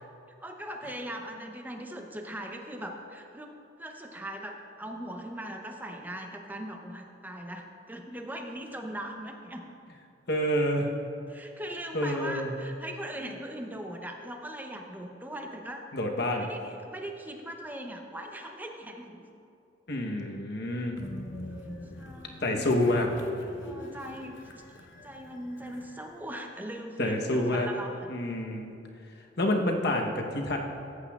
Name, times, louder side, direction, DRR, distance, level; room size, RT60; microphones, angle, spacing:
voice 1, 0.4-3.5 3.8-9.6 11.3-15.9 16.4-19.3 21.9-22.8 23.6-24.6 25.0-28.1, right 1 dB, 10° right, 3 dB, 0.6 m, -40 dB
voice 2, 10.3-10.9 11.9-12.5 15.9-16.5 19.9-21.0 22.4-23.1 27.0-27.7 28.1-28.8 29.4-30.6, left 1 dB, 65° left, 2 dB, 0.9 m, -28 dB
Train, 21.0-26.3, left 1 dB, 90° left, 0.8 m, -43 dB
14.5 x 8.2 x 2.3 m, 2.6 s
head